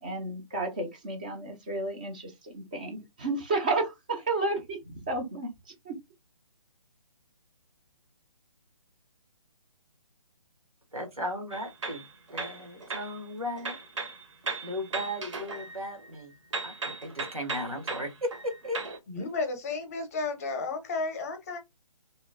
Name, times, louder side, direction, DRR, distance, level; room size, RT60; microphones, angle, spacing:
voice 1, 0.0-5.5 5.8-5.9, right 2 dB, 15° right, 0.3 m, -32 dB
voice 2, 10.9-12.0 12.3-13.8 14.6-16.3 16.6-18.8, equal, 90° right, 1.1 m, -36 dB
sound 1, 11.5-13.2 13.6-16.2 16.5-19.0, right 4 dB, 60° right, 0.7 m, -37 dB
voice 3, 19.1-21.6, left 3 dB, 25° left, 0.6 m, -33 dB
2.8 x 2.2 x 2.3 m
figure-of-eight pair, 140°, 18 cm